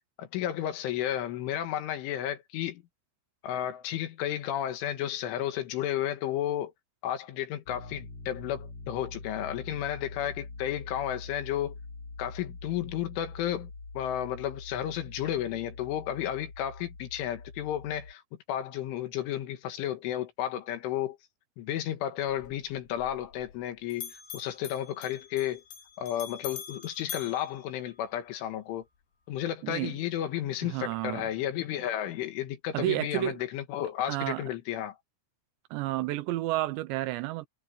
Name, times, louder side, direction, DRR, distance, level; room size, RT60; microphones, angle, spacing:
voice 1, 0.2-2.8 3.4-6.7 7.0-11.8 12.2-13.7 14.0-18.2 18.5-21.2 21.6-25.6 26.0-28.8 29.3-35.0, left 11 dB, 75° left, 4.1 m, -32 dB
sound 1, 7.7-18.1, left 3 dB, 30° left, 3.9 m, -44 dB
Bell, 22.3-23.7 23.9-28.4, left 8 dB, 60° left, 3.5 m, -44 dB
voice 2, 29.6-30.0 30.7-31.3 32.7-33.4 34.1-34.4 35.7-37.5, right 17 dB, 80° right, 2.7 m, -31 dB
omnidirectional pair, 5.6 m